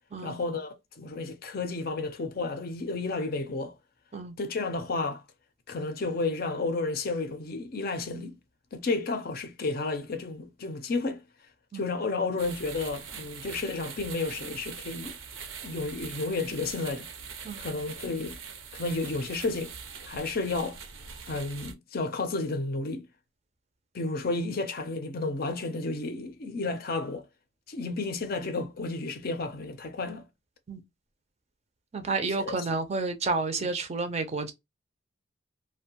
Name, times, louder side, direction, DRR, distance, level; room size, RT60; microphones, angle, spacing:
voice 1, 0.2-3.7 4.4-5.2 5.7-8.4 8.7-11.2 11.7-15.2 15.6-17.1 17.6-18.4 18.7-19.7 20.1-20.8 21.3-23.1 23.9-27.2 27.7-30.2 32.4-32.5 33.6-33.7, left 3 dB, 50° left, 0.5 m, -32 dB
sound 1, 12.4-21.7, right 6 dB, 80° right, 0.7 m, -42 dB
voice 2, 31.9-34.5, right 3 dB, 35° right, 0.5 m, -30 dB
2.6 x 2.2 x 2.7 m
head